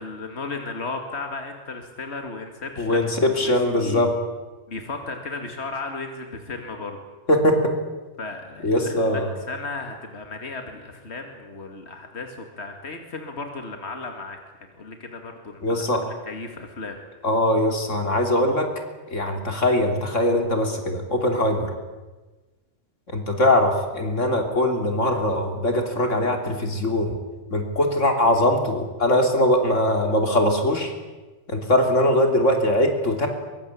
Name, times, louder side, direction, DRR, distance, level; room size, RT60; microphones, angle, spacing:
voice 1, 0.0-3.5 3.8-4.1 4.7-7.0 8.2-14.4 14.8-17.0, left 3 dB, 60° left, 4 dB, 2.5 m, -35 dB
voice 2, 2.8-4.1 7.3-7.6 8.6-9.3 15.6-16.0 17.2-18.7 19.1-21.7 23.1-27.2 27.5-30.9 31.5-33.3, left 1 dB, 90° left, 4 dB, 3.6 m, -21 dB
23.5 x 23.0 x 8.5 m, 1.2 s
omnidirectional pair, 1.3 m